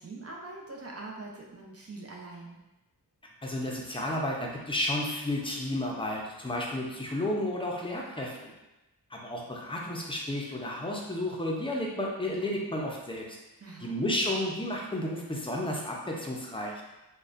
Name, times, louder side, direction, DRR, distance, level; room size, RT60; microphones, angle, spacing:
voice 1, 0.0-2.6 13.6-14.0, right 2 dB, 40° right, -1 dB, 0.7 m, -43 dB
voice 2, 3.4-8.5 9.1-13.4 13.8-16.8, left 1 dB, 15° left, -2 dB, 0.6 m, -32 dB
4.0 x 2.3 x 2.5 m, 1.0 s
wide cardioid pair, 65°, 38 cm